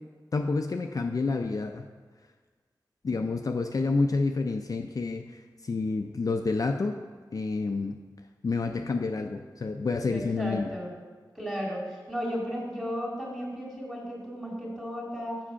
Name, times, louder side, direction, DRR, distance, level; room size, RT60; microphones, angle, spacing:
voice 1, 0.3-1.9 3.0-7.0 7.3-8.0 8.4-10.7, left 3 dB, 50° left, 5 dB, 0.4 m, -29 dB
voice 2, 10.0-10.9 11.4-15.4, equal, 5° right, -3 dB, 2.4 m, -34 dB
7.2 x 4.9 x 5.6 m, 1.5 s
wide cardioid pair, 80°, 8 cm